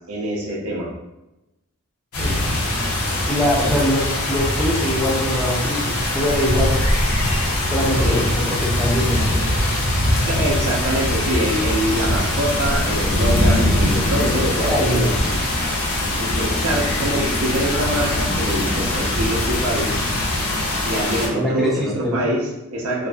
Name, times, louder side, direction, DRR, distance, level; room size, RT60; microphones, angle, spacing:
voice 1, 0.1-0.9 8.0-8.2 10.3-15.2 16.2-20.0 20.9-23.1, right 1 dB, 70° right, -2 dB, 0.6 m, -24 dB
sound 1, 2.1-21.3, left 1 dB, 75° left, 0.7 m, -21 dB
voice 2, 3.3-6.7 7.7-9.5 14.6-15.2 21.3-22.3, equal, ahead, -5 dB, 0.4 m, -23 dB
2.5 x 2.4 x 2.2 m, 0.98 s
head